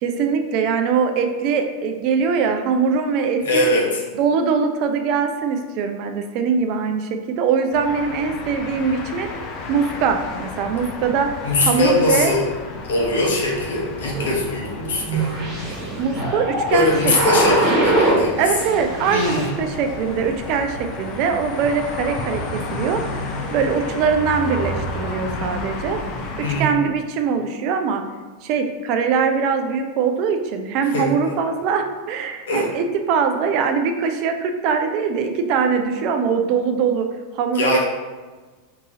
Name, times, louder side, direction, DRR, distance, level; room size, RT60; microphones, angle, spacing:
voice 1, 0.0-3.7 4.1-9.3 9.7-11.3 11.6-12.3 16.0-16.9 17.3-17.7 18.4-23.0 23.5-26.0 26.4-28.0 28.4-37.1 37.3-37.8, right 6 dB, 50° right, 6 dB, 0.4 m, -22 dB
voice 2, 3.4-4.0 11.4-12.5 12.8-15.3 16.7-18.4 19.1-19.5 26.4-26.8 30.9-31.3 32.5-32.7 37.5-37.8, left 2 dB, 70° left, -2 dB, 0.9 m, -21 dB
sound 1, 7.7-26.6, left 2 dB, 45° left, 0.5 m, -32 dB
sound 2, 14.1-18.3 18.6-19.5, right 2 dB, 30° right, 1.3 m, -23 dB
2.8 x 2.6 x 3.6 m, 1.3 s
hypercardioid pair, 95°, 0 cm